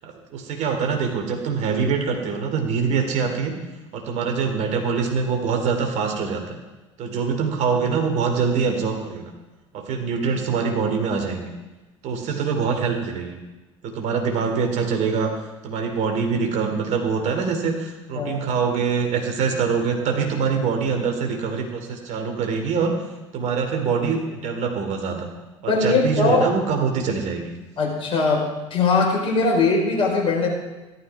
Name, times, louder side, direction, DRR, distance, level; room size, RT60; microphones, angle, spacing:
voice 1, 0.0-3.5 3.9-6.6 7.0-9.3 9.7-11.5 12.0-13.4 13.8-15.4 15.6-22.9 23.3-25.3 25.6-27.6, right 5 dB, 50° right, 3 dB, 2.8 m, -24 dB
voice 2, 25.7-26.5 27.8-28.4 28.7-30.5, left 3 dB, 35° left, -1 dB, 4.3 m, -20 dB
14.0 x 12.0 x 4.8 m, 1.1 s
figure-of-eight pair, 65°, 16 cm